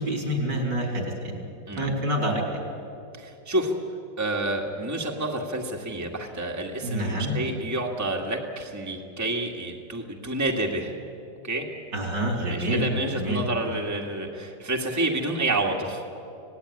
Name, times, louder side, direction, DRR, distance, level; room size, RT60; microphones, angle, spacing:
voice 1, 0.0-1.5 1.8-2.7 6.8-7.4 11.9-12.9 13.1-13.4, equal, 75° right, 1 dB, 4.9 m, -27 dB
voice 2, 3.2-3.8 4.2-11.0 11.4-11.7 12.5-16.0, right 2 dB, 10° right, 0 dB, 1.9 m, -29 dB
26.0 x 18.0 x 9.9 m, 2.6 s
omnidirectional pair, 2.0 m